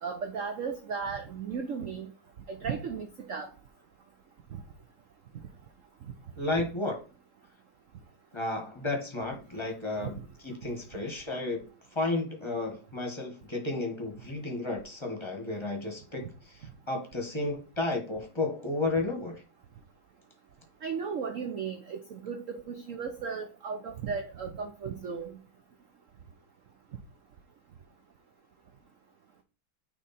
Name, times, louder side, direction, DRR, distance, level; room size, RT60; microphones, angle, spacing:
voice 1, 0.0-2.1 2.5-3.5 10.0-10.1 20.8-25.3, right 6 dB, 80° right, 5 dB, 0.7 m, -35 dB
voice 2, 6.4-7.0 8.3-10.2 10.4-11.6 11.9-19.4, left 2 dB, 15° left, 2 dB, 1.0 m, -32 dB
9.1 x 3.2 x 4.1 m, 0.35 s
omnidirectional pair, 2.3 m